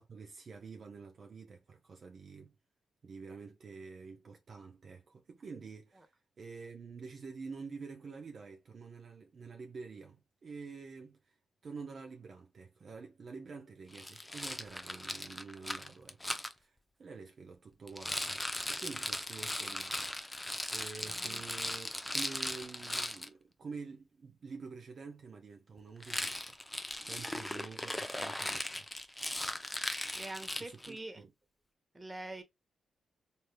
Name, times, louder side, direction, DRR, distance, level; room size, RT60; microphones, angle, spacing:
voice 1, 0.0-2.5 3.0-11.4 11.6-20.1 20.7-26.6 27.0-28.9 30.6-31.3, right 4 dB, 55° right, 0.6 m, -48 dB
Rattle, 13.9-16.5 17.9-23.3 26.0-31.0, left 1 dB, 10° left, 0.5 m, -38 dB
voice 2, 21.1-21.4 30.1-31.2 31.9-32.4, right 2 dB, 20° right, 1.0 m, -45 dB
3.2 x 2.7 x 2.2 m
supercardioid pair, 55°, 0 cm